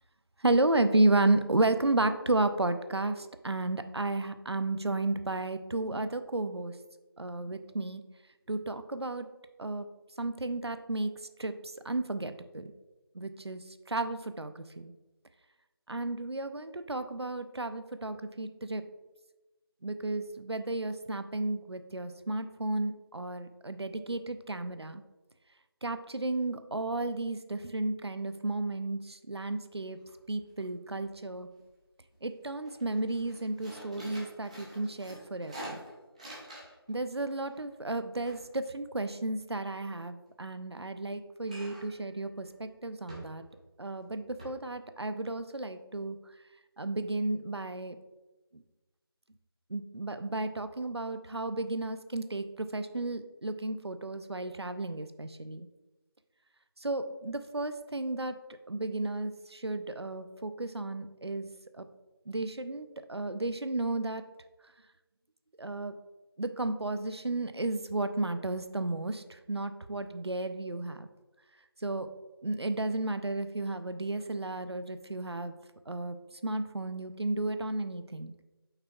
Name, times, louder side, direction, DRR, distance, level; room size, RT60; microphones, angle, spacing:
voice 1, 0.4-6.8 7.2-8.0 8.5-9.3 9.6-9.9 10.2-11.1 11.4-12.7 13.1-14.9 15.9-18.8 19.8-25.0 25.8-30.0 30.3-31.5 32.2-35.8 36.9-43.4 43.8-46.2 46.8-48.0 48.5-48.6 49.7-55.7 56.8-58.4 58.7-61.9 62.3-64.2 65.6-66.0 66.4-71.1 71.8-72.1 72.4-75.5 75.9-76.2 76.4-78.4, right 2 dB, 90° right, 10 dB, 0.6 m, -33 dB
sound 1, 29.7-29.8 30.1-30.6 30.9-31.7 32.1-32.3 32.6-36.9 37.2-39.6 41.4-42.0 42.4-42.6 43.1-43.6 44.0-44.1 44.4-44.5, equal, 15° right, 1.0 m, -47 dB
7.1 x 5.6 x 2.3 m, 1.1 s
figure-of-eight pair, 165°, 13 cm